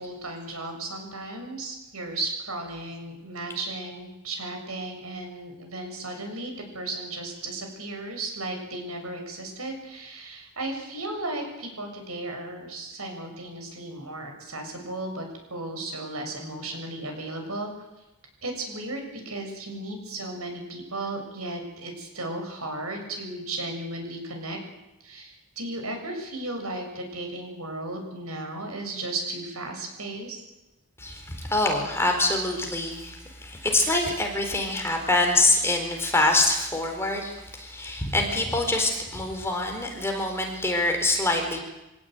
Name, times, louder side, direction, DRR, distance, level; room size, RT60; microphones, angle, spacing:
voice 1, 0.0-17.7 18.4-24.6 25.0-30.4, right 2 dB, 80° right, 4 dB, 7.1 m, -35 dB
voice 2, 31.0-41.6, left 2 dB, 10° left, 3 dB, 4.3 m, -25 dB
25.5 x 17.5 x 9.3 m, 1.0 s
head